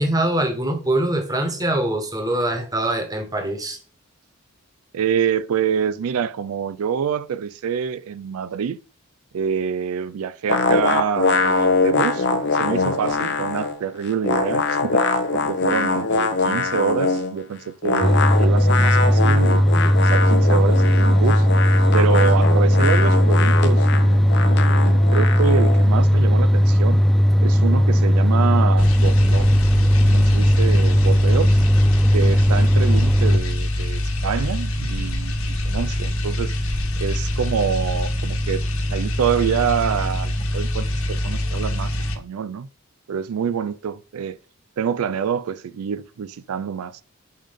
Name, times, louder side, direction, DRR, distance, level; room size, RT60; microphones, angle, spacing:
voice 1, 0.0-3.8, right 1 dB, 15° right, 1.3 m, -23 dB
voice 2, 4.9-8.8 9.3-19.7 20.0-21.5 21.9-27.0 27.4-31.6 32.1-35.3 35.6-36.6 37.0-38.6 38.9-42.7 43.1-44.4 44.8-47.0, right 7 dB, 80° right, 0.4 m, -26 dB
sound 1, 10.5-13.8 14.0-17.3 17.8-25.9, left 4 dB, 55° left, 0.8 m, -23 dB
sound 2, 18.0-33.4, equal, ahead, 0.4 m, -16 dB
sound 3, 28.8-42.2, left 1 dB, 75° left, 1.4 m, -25 dB
5.6 x 5.2 x 5.2 m
head